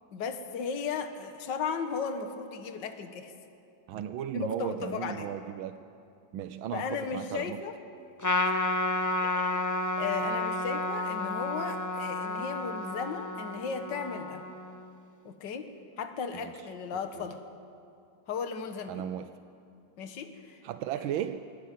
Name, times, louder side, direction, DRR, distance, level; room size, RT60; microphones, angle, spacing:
voice 1, 0.1-3.3 4.3-5.3 6.7-7.7 8.4-8.5 9.2-9.6 10.0-14.4 15.2-17.4 18.3-19.0 20.0-20.6, left 5 dB, 65° left, 7 dB, 2.0 m, -35 dB
voice 2, 3.9-5.8 6.3-7.6 16.3-16.5 16.9-17.3 18.9-19.3 20.6-21.4, right 10 dB, 90° right, 10 dB, 1.5 m, -36 dB
Trumpet, 8.2-14.9, left 2 dB, 25° left, 0.4 m, -31 dB
22.5 x 20.5 x 9.3 m, 2.5 s
omnidirectional pair, 2.1 m